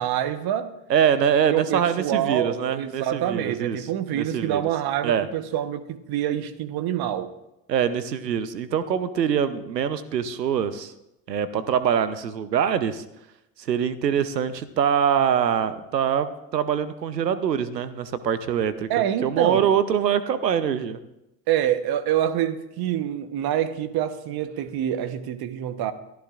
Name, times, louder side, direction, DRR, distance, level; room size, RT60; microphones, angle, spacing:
voice 1, 0.0-0.7 1.5-7.3 18.9-19.7 21.5-25.9, right 11 dB, 50° right, 12 dB, 1.1 m, -26 dB
voice 2, 0.9-3.8 4.1-4.6 5.0-5.3 7.7-10.9 11.3-13.0 13.6-18.9 19.2-21.0, right 8 dB, 90° right, 14 dB, 0.8 m, -24 dB
22.5 x 14.0 x 2.5 m, 0.89 s
figure-of-eight pair, 60°, 48 cm